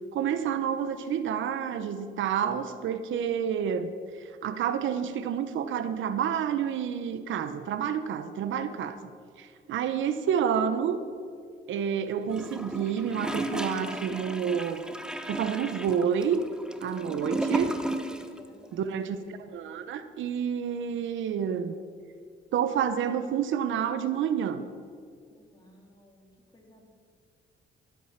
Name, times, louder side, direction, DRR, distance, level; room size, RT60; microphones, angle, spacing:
voice 1, 0.1-9.0 9.4-11.0 11.7-14.8 15.3-16.4 16.8-17.7 18.7-21.8 22.5-24.6, right 8 dB, 75° right, 11 dB, 0.9 m, -29 dB
Gurgling / Toilet flush, 12.3-18.4 18.6-18.7, right 1 dB, 5° right, 1.0 m, -34 dB
voice 2, 18.1-18.9 25.3-26.3 26.5-26.9, left 1 dB, 20° left, 0 dB, 3.3 m, -57 dB
15.5 x 9.2 x 5.8 m, 2.1 s
cardioid pair, 90°, 20 cm